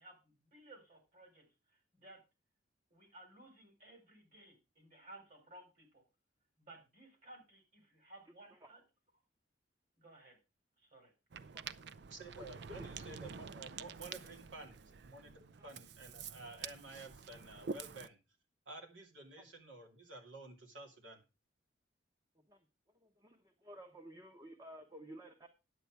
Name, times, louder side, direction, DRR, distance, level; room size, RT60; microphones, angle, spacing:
voice 1, 0.0-2.2 2.9-6.0 6.6-8.8 10.0-10.4 10.8-11.1, right 2 dB, 45° right, 3 dB, 4.6 m, -58 dB
Ocean, 11.3-18.1, right 5 dB, 60° right, 0.5 m, -48 dB
voice 2, 12.1-14.8 15.1-18.2 18.7-21.2, right 2 dB, 85° right, 3 dB, 2.6 m, -52 dB
voice 3, 23.0-25.5, right 1 dB, 20° right, 5 dB, 1.0 m, -53 dB
9.9 x 8.2 x 4.7 m, 0.29 s
head